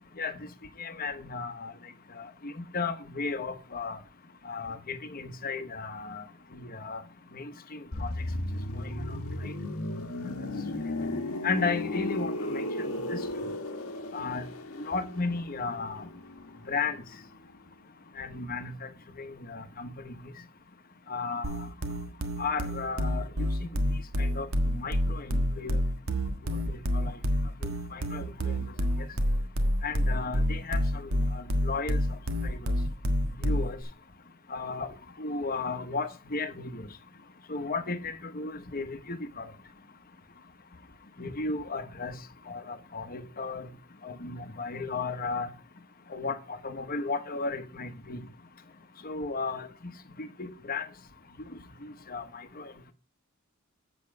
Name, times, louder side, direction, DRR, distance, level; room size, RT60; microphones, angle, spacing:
voice 1, 0.8-1.7 2.2-4.0 4.4-6.2 6.5-7.0 7.3-8.1 8.7-8.9 9.4-9.5 11.4-13.2 14.1-14.5 14.8-16.1 16.7-17.0 18.2-18.9 19.2-20.1 21.1-21.7 22.4-23.2 24.2-25.8 26.7-27.2 27.9-28.6 29.8-32.0 32.4-32.6 33.4-33.8 34.5-34.9 35.2-36.9 37.5-39.5 41.2-42.2 42.5-43.7 44.0-45.5 46.1-48.2 49.0-49.7 50.2-50.9 51.8-52.7, left 4 dB, 45° left, 1.1 m, -34 dB
sound 1, 7.9-17.6 17.8-18.1, left 1 dB, 90° left, 1.4 m, -35 dB
sound 2, 21.4-33.8, equal, 70° right, 1.4 m, -28 dB
8.2 x 7.5 x 4.6 m
head